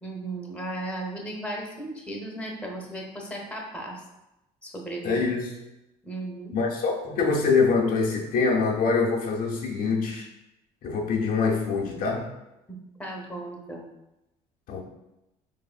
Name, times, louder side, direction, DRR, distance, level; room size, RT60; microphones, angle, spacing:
voice 1, 0.0-4.0 4.6-5.2 6.0-6.5 12.7-13.9, right 1 dB, 5° left, -1 dB, 0.8 m, -36 dB
voice 2, 5.0-5.5 6.5-10.3 10.8-12.3 14.7-14.8, left 4 dB, 65° left, -1 dB, 0.6 m, -24 dB
4.0 x 3.4 x 2.4 m, 0.92 s
supercardioid pair, 90°, 16 cm